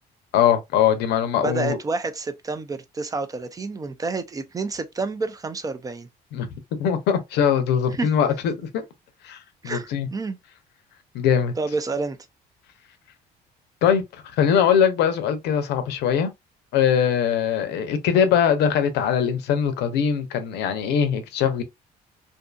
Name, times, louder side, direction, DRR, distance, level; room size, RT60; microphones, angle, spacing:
voice 1, 0.3-1.8 6.3-6.5 6.8-8.8 9.2-9.4 9.6-10.1 11.1-11.5 13.8-14.0 14.4-16.3 16.7-21.6, left 8 dB, 85° left, 0.6 m, -21 dB
voice 2, 1.4-6.1 7.9-8.1 9.6-10.4 11.6-12.2, right 3 dB, 20° right, 0.4 m, -29 dB
2.6 x 2.6 x 2.2 m
cardioid pair, 110°, 17 cm